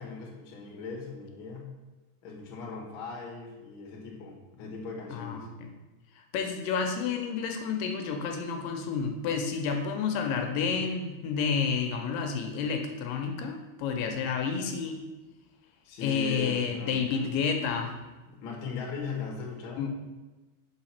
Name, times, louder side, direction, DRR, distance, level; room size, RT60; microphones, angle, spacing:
voice 1, 0.0-1.8 2.2-5.5 15.8-17.3 18.3-19.9, left 4 dB, 55° left, -1 dB, 1.5 m, -39 dB
voice 2, 5.1-5.7 6.3-15.0 16.0-18.0 19.8-19.9, left 6 dB, 85° left, 4 dB, 2.3 m, -30 dB
5.8 x 4.9 x 5.7 m, 1.2 s
omnidirectional pair, 4.0 m